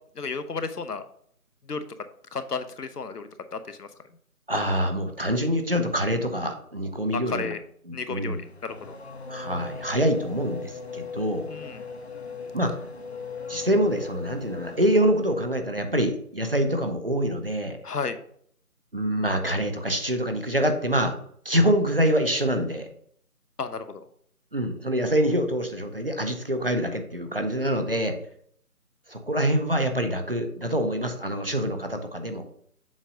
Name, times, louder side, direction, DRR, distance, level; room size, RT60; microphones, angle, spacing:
voice 1, 0.2-1.0 1.6-1.8 2.3-3.9 7.1-7.6 7.9-9.0 11.5-11.8 17.8-18.2 23.6-24.0, left 4 dB, 85° left, 10 dB, 0.8 m, -33 dB
voice 2, 4.5-7.5 7.9-8.4 9.3-11.5 12.5-12.8 13.5-17.8 18.9-21.1 21.4-22.9 24.5-28.2 29.1-32.4, equal, 40° right, 6 dB, 0.6 m, -25 dB
Race car auto racing / Accelerating revving vroom, 8.2-15.5, left 5 dB, 45° left, 0.6 m, -39 dB
7.2 x 2.6 x 5.1 m, 0.64 s
figure-of-eight pair, 160°, 45 cm